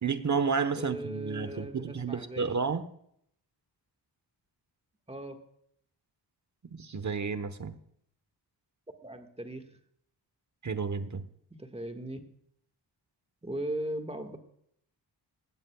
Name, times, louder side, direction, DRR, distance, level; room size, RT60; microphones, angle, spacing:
voice 1, 0.0-2.8 6.7-7.8 10.6-11.3, right 5 dB, 40° right, 1.1 m, -31 dB
voice 2, 0.7-2.6 5.1-5.4 9.0-9.7 11.5-12.2 13.4-14.4, right 1 dB, 15° right, 1.7 m, -38 dB
18.0 x 14.0 x 2.3 m
wide cardioid pair, 95°, 42 cm